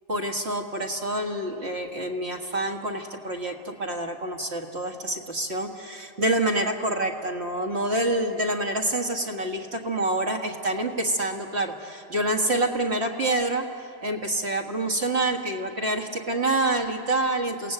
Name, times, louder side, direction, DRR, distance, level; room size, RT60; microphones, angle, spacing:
voice 1, 0.1-13.7 14.0-17.7, right 1 dB, 55° right, 2 dB, 2.0 m, -27 dB
28.0 x 17.5 x 7.8 m, 2.5 s
omnidirectional pair, 1.3 m